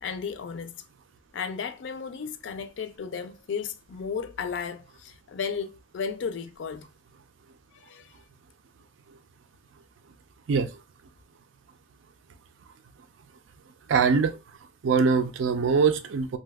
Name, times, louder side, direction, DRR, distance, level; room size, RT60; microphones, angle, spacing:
voice 1, 0.0-0.8 1.3-6.9 7.7-8.2, left 6 dB, 75° left, 0.4 m, -34 dB
voice 2, 13.9-14.4 14.8-16.4, right 5 dB, 90° right, 0.4 m, -22 dB
2.6 x 2.2 x 3.4 m
head